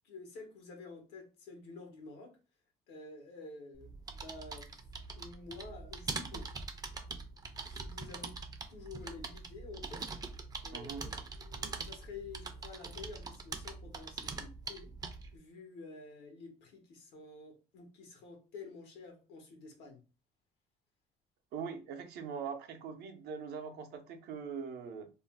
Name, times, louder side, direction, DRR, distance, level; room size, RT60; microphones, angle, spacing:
voice 1, 0.0-2.4 2.9-4.7 5.2-6.5 7.6-10.0 10.6-14.9 15.3-20.0, left 3 dB, 85° left, 1.0 m, -50 dB
sound 1, 3.7-15.4, right 4 dB, 25° right, 0.4 m, -43 dB
voice 2, 10.7-11.0 21.5-25.1, right 6 dB, 75° right, 0.6 m, -42 dB
2.5 x 2.0 x 3.3 m
cardioid pair, 110°, 17 cm